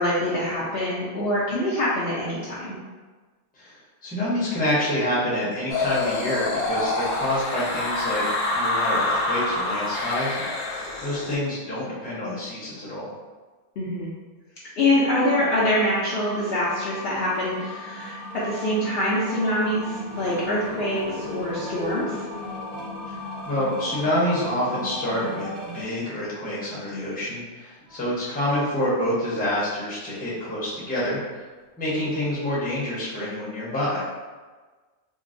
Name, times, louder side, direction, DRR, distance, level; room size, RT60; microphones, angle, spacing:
voice 1, 0.0-2.8 13.8-14.1 14.8-22.2, left 1 dB, 60° left, -7 dB, 0.7 m, -25 dB
voice 2, 4.0-8.2 8.5-13.1 23.1-31.4 31.8-34.0, left 1 dB, 10° left, -8 dB, 0.6 m, -27 dB
sound 1, 5.7-11.3, left 2 dB, 90° left, 1.0 m, -26 dB
sound 2, 15.2-25.8, left 1 dB, 55° right, 0.6 m, -37 dB
sound 3, 19.0-24.6 25.4-25.8 27.1-27.2 27.9-28.2 30.3-30.9 31.6-31.7 31.9-32.0, left 1 dB, 90° right, 1.2 m, -40 dB
3.7 x 2.0 x 2.5 m, 1.3 s
omnidirectional pair, 1.3 m